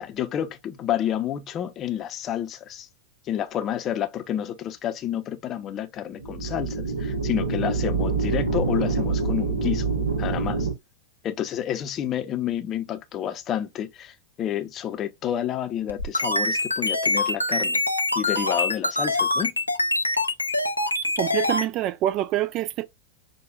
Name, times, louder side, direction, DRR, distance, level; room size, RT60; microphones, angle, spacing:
voice 1, 0.0-2.9 3.3-9.9 10.2-10.7 11.2-17.8 18.2-19.5, left 10 dB, 30° left, 0.6 m, -29 dB
sound 1, 6.1-10.7, right 4 dB, 75° right, 1.0 m, -26 dB
sound 2, 15.9-21.7, left 2 dB, 85° left, 0.5 m, -24 dB
voice 2, 21.2-22.8, right 13 dB, 40° right, 0.3 m, -25 dB
6.5 x 2.3 x 2.4 m
figure-of-eight pair, 90°, 0 cm